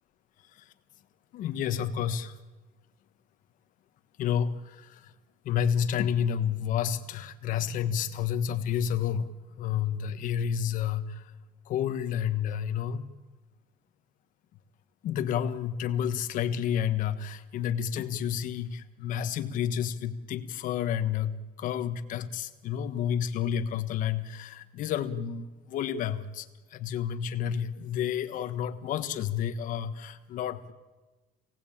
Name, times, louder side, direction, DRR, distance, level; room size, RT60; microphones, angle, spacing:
voice 1, 1.3-2.3 4.2-5.1 5.4-9.3 9.6-11.2 11.7-13.1 15.0-30.7, left 8 dB, 50° left, 9 dB, 1.4 m, -30 dB
28.0 x 18.5 x 8.7 m, 1.2 s
cardioid pair, 170°, 17 cm